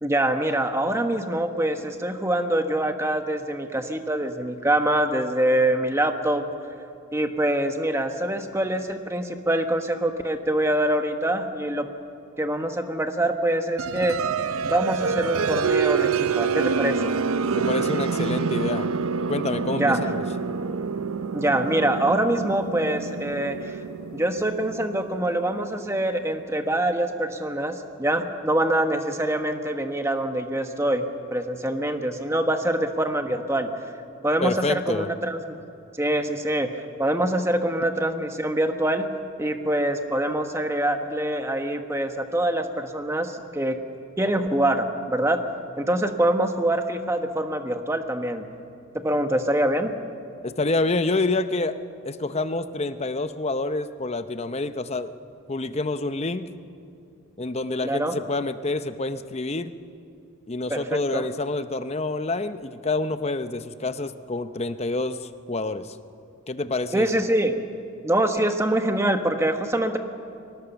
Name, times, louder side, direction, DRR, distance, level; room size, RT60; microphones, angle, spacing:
voice 1, 0.0-6.4 7.1-11.9 12.4-14.2 14.7-17.2 19.7-20.0 21.3-23.8 24.1-33.7 34.2-35.6 36.0-36.7 37.0-39.1 39.4-43.8 44.2-45.4 45.8-48.4 49.0-49.9 57.8-58.1 60.7-61.3 66.9-67.6 68.0-70.0, right 1 dB, 15° right, 6 dB, 1.1 m, -24 dB
sound 1, 13.8-26.3, right 5 dB, 85° right, 0.6 m, -27 dB
voice 2, 17.5-18.9 19.3-20.2 34.4-35.1 50.4-51.8 52.0-55.1 55.5-56.5 57.4-59.7 60.5-66.0 66.5-67.2, left 2 dB, 30° left, 11 dB, 0.7 m, -27 dB
23.0 x 19.0 x 7.0 m, 2.6 s
head